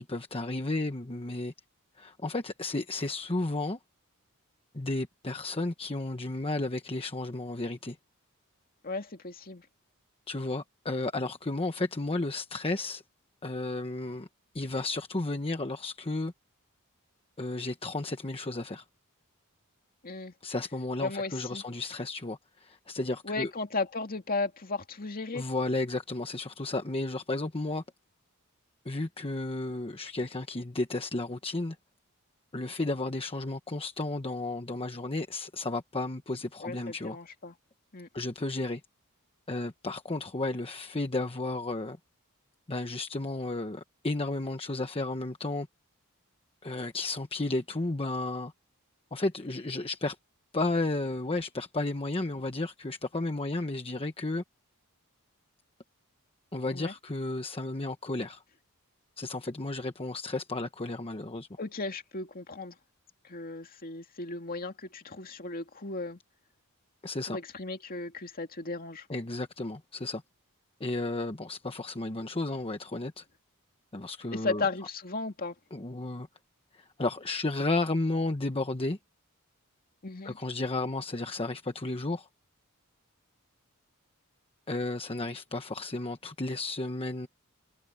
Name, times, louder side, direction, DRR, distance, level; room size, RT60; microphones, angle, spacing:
voice 1, 0.0-1.5 2.0-3.8 4.7-8.0 10.3-13.0 13.4-14.3 14.5-16.3 17.4-18.8 20.4-23.5 25.3-27.8 28.8-31.8 32.5-37.2 38.1-38.8 39.5-42.0 42.7-45.7 46.6-48.5 49.1-50.2 50.5-54.4 56.5-58.4 59.2-61.5 67.0-67.4 69.1-70.2 70.8-73.2 73.9-74.6 75.7-76.3 76.7-79.0 80.2-82.3 84.7-87.3, left 2 dB, 25° left, 1.1 m, -33 dB
voice 2, 8.8-9.6 20.0-20.3 21.0-21.6 23.2-25.4 36.6-37.5 37.9-38.1 56.7-56.9 61.6-62.7 63.2-66.2 67.3-69.1 74.3-75.5 80.0-80.4, left 3 dB, 40° left, 2.3 m, -35 dB
head